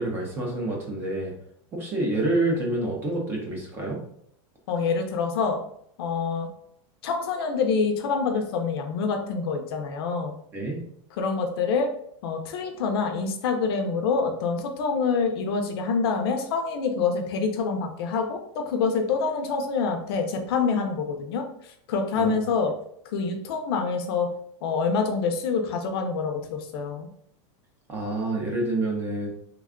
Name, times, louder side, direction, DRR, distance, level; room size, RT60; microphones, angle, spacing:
voice 1, 0.0-1.3 1.7-4.0 10.5-10.8 22.2-22.4 27.9-29.3, right 2 dB, 15° right, -1 dB, 0.5 m, -27 dB
voice 2, 4.7-5.6 6.0-6.5 7.0-10.3 11.2-11.9 12.2-21.4 21.9-22.7 23.1-24.3 24.6-27.1, left 5 dB, 50° left, 4 dB, 0.5 m, -26 dB
3.4 x 2.2 x 3.6 m, 0.69 s
supercardioid pair, 180°, 16 cm